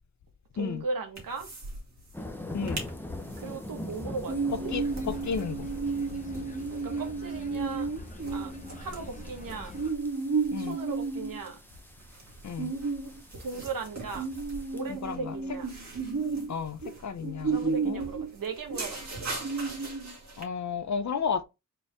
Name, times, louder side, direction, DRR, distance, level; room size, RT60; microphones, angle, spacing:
voice 1, 0.5-1.5 3.4-4.3 4.6-4.7 6.8-7.9 8.3-8.5 8.8-9.7 10.6-11.6 13.4-14.2 14.7-15.7 17.4-19.4, right 4 dB, 75° right, 1.3 m, -37 dB
sound 1, 1.2-1.8 2.1-2.2 2.5-2.9 3.3-20.4, right 4 dB, 55° right, 1.8 m, -33 dB
sound 2, 2.1-14.8, left 1 dB, 5° left, 0.8 m, -44 dB
voice 2, 4.7-5.7 10.5-10.8 12.4-12.7 14.9-15.4 16.5-18.0 20.4-21.4, left 6 dB, 55° left, 0.7 m, -33 dB
sound 3, 4.7-9.9, left 2 dB, 25° left, 1.1 m, -44 dB
4.3 x 3.3 x 3.4 m
wide cardioid pair, 80°, 33 cm